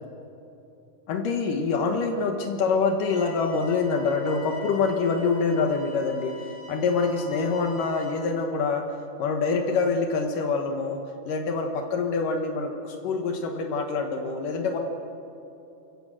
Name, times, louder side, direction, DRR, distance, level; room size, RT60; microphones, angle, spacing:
voice 1, 1.1-8.9 9.2-14.8, left 4 dB, 75° left, 4 dB, 2.9 m, -26 dB
sound 1, 3.1-8.1, left 3 dB, 25° right, 8.2 m, -45 dB
30.0 x 16.0 x 7.6 m, 2.9 s
omnidirectional pair, 3.8 m